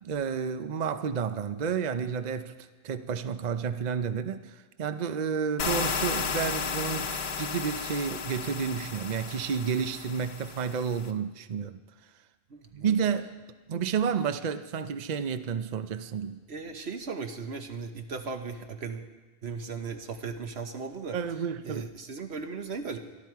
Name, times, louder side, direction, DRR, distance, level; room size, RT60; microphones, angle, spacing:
voice 1, 0.0-2.5 2.8-11.8 12.7-13.4 13.7-16.4 21.1-21.9, right 6 dB, 50° right, 0.7 m, -31 dB
sound 1, 5.6-11.1, left 5 dB, 75° left, 1.1 m, -33 dB
voice 2, 12.5-13.0 16.5-19.1 19.4-23.0, right 4 dB, 80° right, 1.5 m, -37 dB
23.0 x 13.0 x 4.7 m
omnidirectional pair, 1.1 m